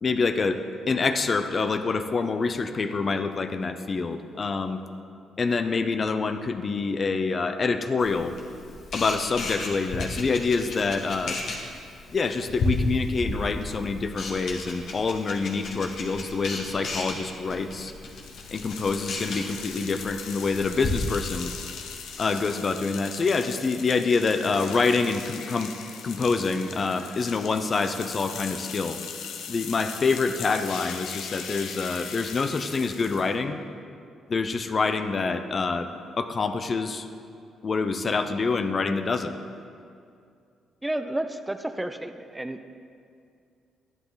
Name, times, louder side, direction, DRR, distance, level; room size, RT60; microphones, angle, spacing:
voice 1, 0.0-4.8 5.4-8.3 8.9-11.4 12.1-17.9 18.5-21.5 22.2-25.7 26.0-29.0 29.5-33.6 34.3-35.9 36.2-37.1 37.6-39.3, left 4 dB, 40° left, 9 dB, 0.6 m, -26 dB
Camera, 8.0-21.6, left 2 dB, 65° left, 1.9 m, -34 dB
sound 1, 18.1-33.4, left 7 dB, 85° left, 0.8 m, -39 dB
voice 2, 40.8-42.7, right 1 dB, 10° right, 8 dB, 0.5 m, -31 dB
11.5 x 11.0 x 4.0 m, 2.4 s
cardioid pair, 90°, 0 cm